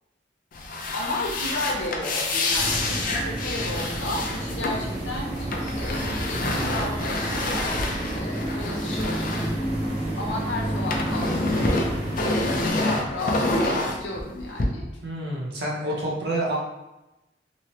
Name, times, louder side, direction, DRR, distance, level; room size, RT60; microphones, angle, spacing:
sound 1, 0.5-10.3 10.6-14.6, left 2 dB, 50° left, 0.5 m, -28 dB
voice 1, 0.9-7.2 8.1-9.5 10.2-11.5 12.2-14.9 15.8-16.0, left 1 dB, 85° left, -1 dB, 0.8 m, -34 dB
sound 2, 2.5-12.7, right 1 dB, 35° right, 1.0 m, -30 dB
voice 2, 15.0-16.6, right 1 dB, 65° right, -4 dB, 0.9 m, -28 dB
3.0 x 2.9 x 2.8 m, 0.98 s
head